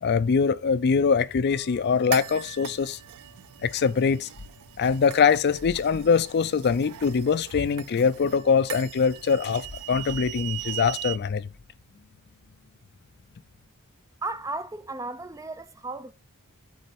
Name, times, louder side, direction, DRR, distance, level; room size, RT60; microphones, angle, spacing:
voice 1, 0.0-3.0 3.6-4.3 4.8-11.5, left 6 dB, 50° left, 0.4 m, -23 dB
sound 1, 1.5-11.2, right 14 dB, 80° right, 0.4 m, -40 dB
sound 2, 4.3-4.9 5.5-6.3 9.1-11.7, left 2 dB, 65° left, 0.9 m, -47 dB
voice 2, 14.2-16.1, right 2 dB, 15° right, 0.4 m, -34 dB
6.3 x 4.5 x 4.2 m
head